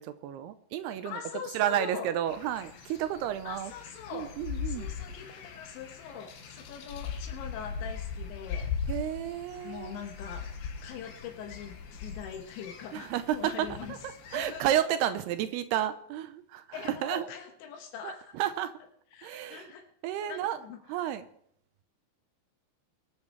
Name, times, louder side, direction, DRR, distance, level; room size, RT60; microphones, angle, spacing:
voice 1, 0.0-1.2 1.5-3.7 4.1-4.9 8.9-10.0 12.9-14.0 14.3-17.3 18.0-18.8 19.2-19.7 20.0-20.6 20.9-21.3, right 11 dB, 80° right, 10 dB, 2.4 m, -31 dB
voice 2, 1.0-2.1 3.4-4.4 4.6-8.7 9.6-10.5 10.8-14.0 14.3-14.8 15.1-15.2 16.7-18.4 19.1-19.9 20.3-21.1, left 7 dB, 80° left, 4 dB, 3.4 m, -42 dB
sound 1, 2.3-14.6, left 6 dB, 65° left, 2.7 m, -40 dB
23.0 x 9.2 x 3.2 m, 0.68 s
omnidirectional pair, 5.2 m